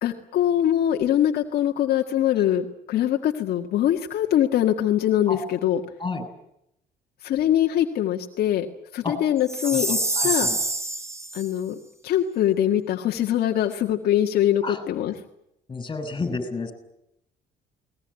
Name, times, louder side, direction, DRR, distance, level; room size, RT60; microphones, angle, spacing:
voice 1, 0.0-5.8 7.2-8.7 8.9-10.5 11.3-11.8 12.0-15.1, left 11 dB, 70° left, 3 dB, 1.8 m, -23 dB
Chime, 9.5-11.5, right 2 dB, 15° right, 2.6 m, -26 dB
voice 2, 9.6-10.6 14.6-14.8 15.7-16.7, left 3 dB, 25° left, 11 dB, 6.2 m, -31 dB
22.0 x 20.5 x 9.8 m, 0.79 s
cardioid pair, 110°, 17 cm